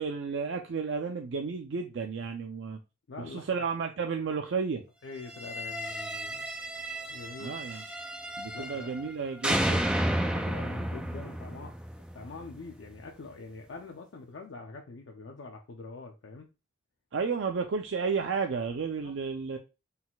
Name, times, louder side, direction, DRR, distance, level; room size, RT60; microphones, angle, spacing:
voice 1, 0.0-2.8 3.2-4.8 7.4-7.8 8.4-9.9 17.1-19.6, right 5 dB, 75° right, 5 dB, 0.4 m, -32 dB
voice 2, 3.1-3.5 5.0-6.4 7.1-7.6 8.5-8.9 10.1-11.7 12.1-16.5 19.0-19.1, left 3 dB, 80° left, 2 dB, 0.5 m, -44 dB
sound 1, 5.3-9.1 9.4-12.5, right 1 dB, 5° right, 0.3 m, -32 dB
4.0 x 2.3 x 4.0 m, 0.28 s
head